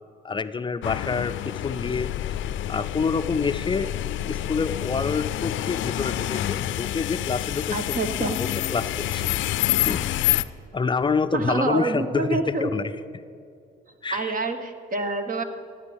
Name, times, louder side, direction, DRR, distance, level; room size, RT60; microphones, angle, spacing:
voice 1, 0.2-2.4 2.7-3.9 4.3-9.2 9.8-10.0 10.7-12.9 14.0-14.3, left 5 dB, 25° left, 11 dB, 0.5 m, -27 dB
sound 1, 0.8-10.4, left 13 dB, 75° left, 0.5 m, -28 dB
voice 2, 7.7-8.4 11.3-12.7 14.1-15.4, right 3 dB, 45° right, 8 dB, 1.2 m, -27 dB
14.0 x 9.2 x 5.2 m, 2.4 s
cardioid pair, 90°, 20 cm